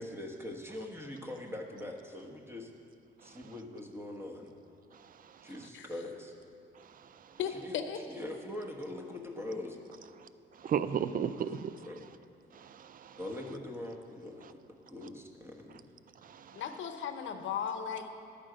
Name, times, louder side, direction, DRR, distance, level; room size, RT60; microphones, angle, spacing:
voice 1, 0.0-2.7 3.2-4.5 5.4-6.3 7.6-7.8 8.1-9.8 11.9-12.0 13.2-14.6 14.9-15.8, left 1 dB, 10° right, 1 dB, 1.2 m, -42 dB
voice 2, 4.9-5.5 6.8-7.3 10.2-10.3 10.6-11.9 12.5-13.2 16.2-16.6, right 8 dB, 45° right, 13 dB, 0.5 m, -36 dB
voice 3, 7.4-8.0 16.5-18.1, left 7 dB, 70° left, 7 dB, 0.8 m, -36 dB
11.0 x 5.0 x 7.7 m, 2.4 s
cardioid pair, 90°, 20 cm